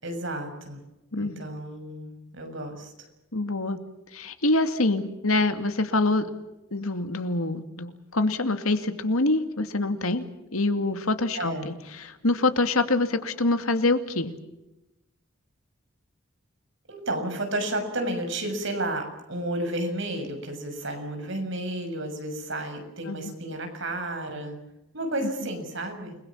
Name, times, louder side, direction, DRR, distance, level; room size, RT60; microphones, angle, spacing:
voice 1, 0.0-0.8 1.2-2.9 11.3-11.7 16.9-24.6 24.9-26.2, right 1 dB, 60° right, 5 dB, 6.6 m, -32 dB
voice 2, 1.1-1.4 3.3-3.8 4.1-6.3 6.7-10.2 10.5-14.3 23.1-23.3 25.2-25.3, left 2 dB, 85° left, 8 dB, 2.4 m, -25 dB
29.5 x 21.5 x 7.3 m, 0.93 s
head